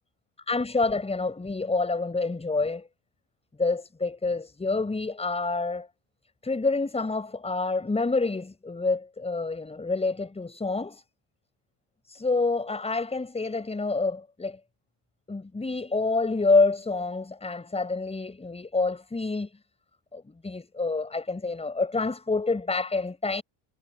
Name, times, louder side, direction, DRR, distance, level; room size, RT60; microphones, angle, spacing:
voice 1, 0.5-2.9 3.6-5.9 6.4-11.0 12.1-14.6 15.3-19.5 20.1-23.4, left 3 dB, 15° left, 5.6 m, -27 dB
cardioid pair, 125°, 45 cm